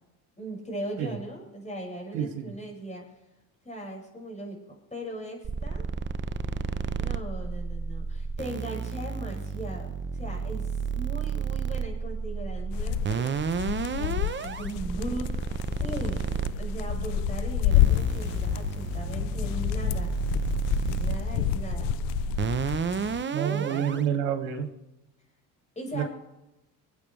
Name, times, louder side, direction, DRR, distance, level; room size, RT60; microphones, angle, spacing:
voice 1, 0.4-3.0 3.6-4.6 4.9-5.9 7.0-13.6 13.9-15.3 15.8-16.3 16.6-20.1 21.0-21.9 23.5-24.1 25.8-26.0, right 1 dB, 15° left, -1 dB, 6.0 m, -38 dB
voice 2, 2.1-2.5 23.3-24.7 25.9-26.0, right 9 dB, 85° right, 4 dB, 2.4 m, -28 dB
sound 1, 5.4-24.0, right 6 dB, 25° right, 0.8 m, -32 dB
sound 2, 12.7-23.2, left 14 dB, 70° left, 0.6 m, -29 dB
25.5 x 8.8 x 3.3 m, 0.96 s
supercardioid pair, 80°, 45 cm